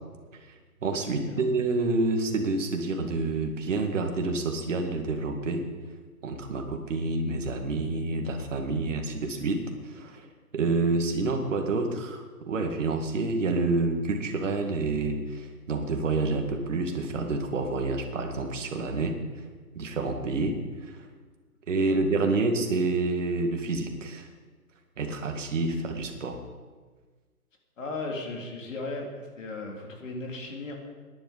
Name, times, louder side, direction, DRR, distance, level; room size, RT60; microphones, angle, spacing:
voice 1, 0.8-5.7 6.2-10.3 10.5-19.2 19.8-21.0 21.7-24.3 25.0-26.4, right 3 dB, 50° right, 4 dB, 2.1 m, -28 dB
voice 2, 27.8-30.7, left 2 dB, 55° left, 1 dB, 3.2 m, -36 dB
17.5 x 10.5 x 5.1 m, 1.4 s
hypercardioid pair, 160°, 47 cm